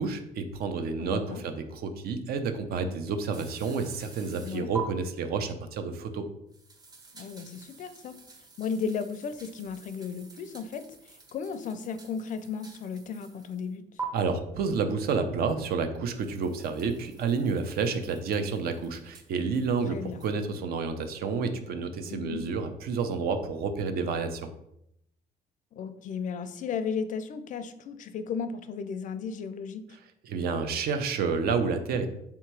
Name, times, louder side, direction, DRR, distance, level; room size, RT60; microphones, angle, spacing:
voice 1, 0.0-6.2 14.1-24.5 30.2-32.1, right 5 dB, 65° right, 8 dB, 0.6 m, -30 dB
voice 2, 1.0-1.4 4.4-4.7 7.1-8.2 8.6-13.8 19.9-20.2 22.1-22.5 25.7-29.8, left 6 dB, 50° left, 11 dB, 0.4 m, -35 dB
sound 1, 3.3-4.8 6.5-13.7 14.0-14.1 16.2-20.4, right 4 dB, 25° right, 0.7 m, -47 dB
3.4 x 2.8 x 4.5 m, 0.77 s
cardioid pair, 110°, 17 cm